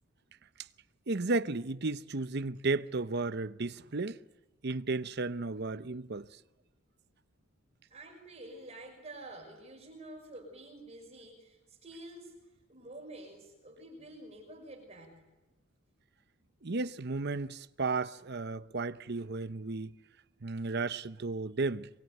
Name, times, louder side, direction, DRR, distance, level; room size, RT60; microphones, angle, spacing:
voice 1, 1.1-4.2 4.6-6.3 16.6-19.9 20.4-21.9, right 3 dB, 50° right, 0.8 m, -33 dB
voice 2, 7.9-12.4 12.7-15.3, right 1 dB, 30° right, 5.7 m, -49 dB
24.5 x 23.0 x 9.3 m
head